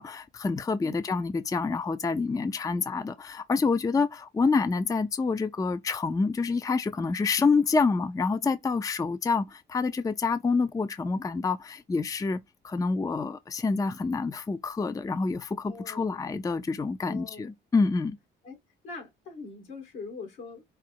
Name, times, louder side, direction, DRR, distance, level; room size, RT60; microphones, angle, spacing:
voice 1, 0.0-12.4 12.6-18.2, left 4 dB, 15° left, 0.4 m, -27 dB
voice 2, 15.6-16.2 17.0-17.5 18.4-18.6 18.8-20.6, left 4 dB, 80° left, 2.2 m, -42 dB
4.9 x 2.0 x 4.5 m
cardioid pair, 90°, 20 cm